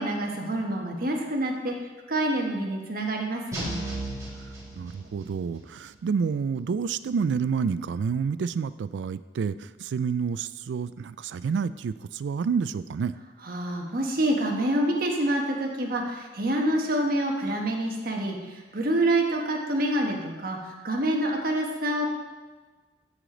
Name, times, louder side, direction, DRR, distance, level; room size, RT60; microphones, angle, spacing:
voice 1, 0.0-1.7 2.1-3.7 13.4-22.1, right 1 dB, 55° right, 1 dB, 1.3 m, -27 dB
sound 1, 3.5-5.4, right 1 dB, 20° right, 2.4 m, -35 dB
voice 2, 4.7-13.2, right 6 dB, 85° right, 16 dB, 0.3 m, -29 dB
12.5 x 5.0 x 3.8 m, 1.3 s
head